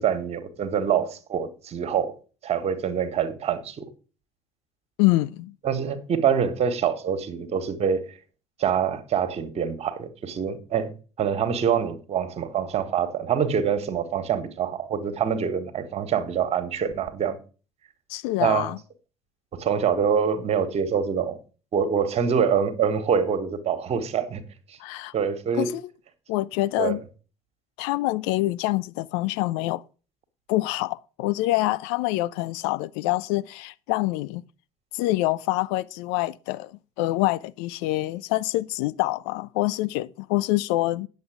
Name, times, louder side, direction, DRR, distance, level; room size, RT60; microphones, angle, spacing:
voice 1, 0.0-2.1 2.4-3.8 5.6-8.0 8.6-10.9 11.2-17.4 18.4-18.7 19.5-21.4 21.7-24.4 24.7-24.8 25.1-25.7 26.8-27.0, right 7 dB, 40° right, 1.5 m, -25 dB
voice 2, 5.0-5.5 18.1-18.8 24.8-25.1 25.5-25.8 26.3-27.0 27.8-29.8 30.5-34.4 34.9-41.1, left 18 dB, 60° left, 0.4 m, -26 dB
9.4 x 7.1 x 4.9 m
figure-of-eight pair, 55°, 16 cm